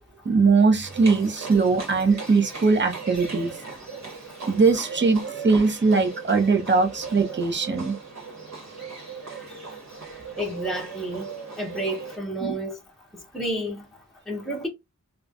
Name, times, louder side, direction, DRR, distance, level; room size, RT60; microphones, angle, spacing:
voice 1, 0.2-3.5 4.5-8.0 12.4-12.6, right 4 dB, 40° right, 0.7 m, -21 dB
Livestock farm animals working animals, 0.8-12.2, right 5 dB, 65° right, 1.2 m, -38 dB
voice 2, 10.4-11.3 11.6-12.8 13.3-13.8 14.3-14.7, right 1 dB, ahead, 0.8 m, -30 dB
3.0 x 2.1 x 2.4 m
wide cardioid pair, 55°, 30 cm